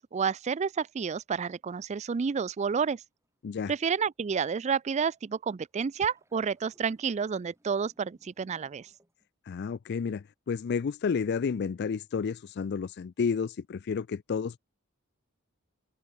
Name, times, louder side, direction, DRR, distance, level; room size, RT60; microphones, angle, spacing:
voice 1, 0.0-3.0 3.7-8.9, right 6 dB, 35° right, 0.4 m, -30 dB
sound 1, 1.8-9.3, right 1 dB, 15° right, 7.7 m, -71 dB
voice 2, 9.5-14.6, left 6 dB, 55° left, 0.4 m, -31 dB
open air
head